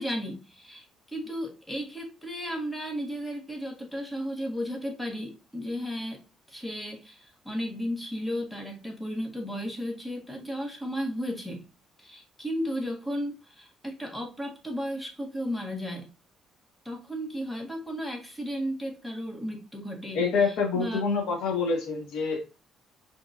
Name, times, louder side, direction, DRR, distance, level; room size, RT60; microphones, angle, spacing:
voice 1, 0.0-6.2 6.5-11.6 12.0-16.1 16.8-21.0, equal, 5° left, 1 dB, 1.6 m, -34 dB
voice 2, 20.1-22.4, left 4 dB, 80° left, 1 dB, 1.6 m, -26 dB
5.0 x 3.8 x 2.6 m, 0.32 s
cardioid pair, 100°, 0 cm